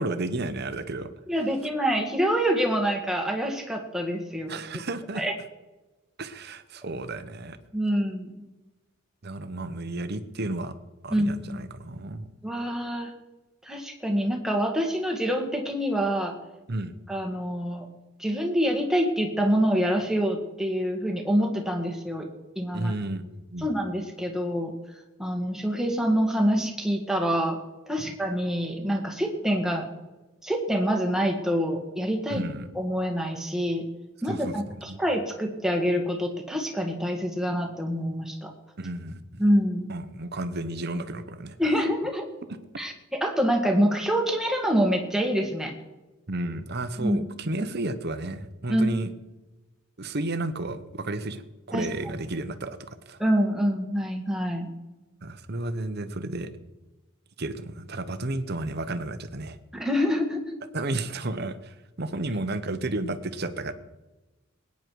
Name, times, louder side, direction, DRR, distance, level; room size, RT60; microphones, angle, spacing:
voice 1, 0.0-1.1 4.5-5.2 6.2-7.6 9.2-10.7 11.0-12.3 16.7-17.0 22.7-23.7 28.0-28.1 32.3-32.7 34.3-34.5 34.9-35.0 38.8-39.2 39.9-41.6 46.3-49.1 50.0-51.4 51.7-53.2 55.2-56.5 57.4-59.6 60.7-63.7, right 2 dB, 50° right, 11 dB, 1.0 m, -32 dB
voice 2, 1.3-4.8 5.2-5.3 7.7-8.4 11.1-11.6 12.4-13.1 13.6-16.3 17.1-17.9 18.2-22.3 22.6-22.9 23.6-24.7 25.2-27.6 27.9-29.9 30.4-32.4 32.7-33.9 34.2-38.5 39.4-39.9 41.6-42.3 42.8-45.7 47.0-47.2 48.7-48.9 51.7-51.9 53.2-54.7 59.7-60.6, equal, ahead, 2 dB, 1.8 m, -26 dB
20.5 x 9.6 x 4.7 m, 1.1 s
head